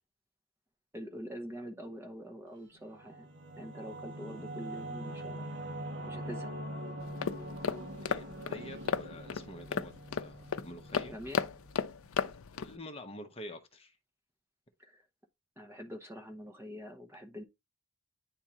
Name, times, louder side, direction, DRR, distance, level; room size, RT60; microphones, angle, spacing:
voice 1, 0.9-3.3 3.6-5.4 6.1-6.5 11.1-11.4 14.8-15.0 15.6-17.4, equal, 10° right, 0.8 m, -45 dB
Singing / Musical instrument, 2.7-11.9, right 1 dB, 55° right, 1.0 m, -43 dB
sound 1, 7.0-12.8, left 6 dB, 75° left, 0.5 m, -35 dB
voice 2, 8.0-9.9 10.2-11.2 12.2-13.9, left 1 dB, 25° left, 0.8 m, -47 dB
9.8 x 3.6 x 2.8 m
head